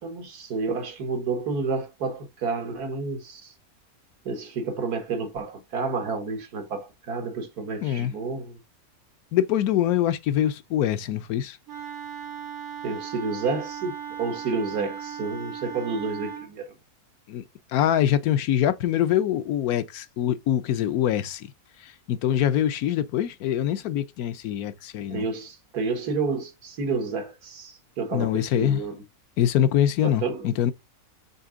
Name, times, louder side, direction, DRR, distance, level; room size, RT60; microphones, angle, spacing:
voice 1, 0.0-3.5 4.3-8.6 12.8-16.7 25.1-29.0 30.0-30.5, right 4 dB, 90° right, 1.9 m, -30 dB
voice 2, 7.8-8.1 9.3-11.6 17.3-17.4 17.7-21.5 21.8-25.3 28.1-28.8 29.4-30.7, left 11 dB, 75° left, 1.1 m, -24 dB
Wind instrument woodwind instrument, 11.7-16.5, right 8 dB, 75° right, 1.9 m, -37 dB
6.9 x 3.6 x 3.7 m
omnidirectional pair, 1.6 m